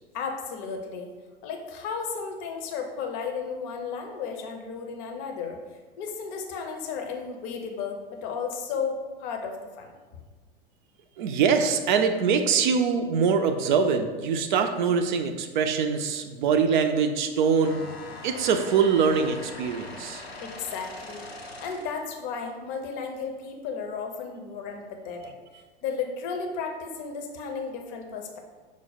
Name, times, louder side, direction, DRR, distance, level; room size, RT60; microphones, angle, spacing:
voice 1, 0.1-1.1 1.4-5.6 6.0-9.9 20.4-21.3 21.6-25.3 25.8-28.4, left 5 dB, 40° left, 3 dB, 0.7 m, -34 dB
voice 2, 11.2-17.9 18.2-20.2, right 6 dB, 50° right, 7 dB, 0.5 m, -23 dB
sound 1, 17.6-22.1, left 2 dB, 85° left, 0.7 m, -42 dB
6.1 x 2.1 x 4.1 m, 1.4 s
figure-of-eight pair, 85°, 30 cm